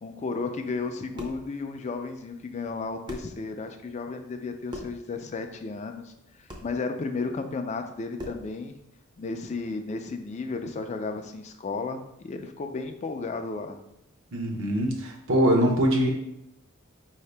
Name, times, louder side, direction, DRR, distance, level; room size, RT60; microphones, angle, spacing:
voice 1, 0.0-6.1 6.6-8.8 9.2-13.8, left 4 dB, 30° left, 5 dB, 0.4 m, -33 dB
sound 1, 1.2-1.5 2.7-2.8 3.1-3.4 4.7-5.0 6.5-6.7 8.2-8.5, left 1 dB, 20° right, 0.6 m, -39 dB
voice 2, 14.3-16.1, equal, 65° right, 0 dB, 0.8 m, -23 dB
4.8 x 2.8 x 3.3 m, 0.80 s
head